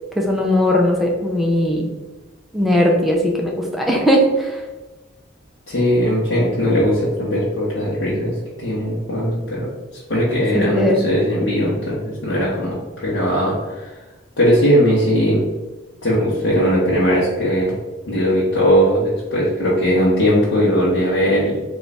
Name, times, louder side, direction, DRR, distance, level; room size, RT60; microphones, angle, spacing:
voice 1, 0.2-1.9 2.5-4.6 10.5-11.0, equal, ahead, -1 dB, 0.4 m, -18 dB
voice 2, 5.7-13.9 14.4-15.4 16.0-17.7 18.1-21.6, equal, 70° left, -8 dB, 0.8 m, -19 dB
3.3 x 2.3 x 4.0 m, 1.2 s
head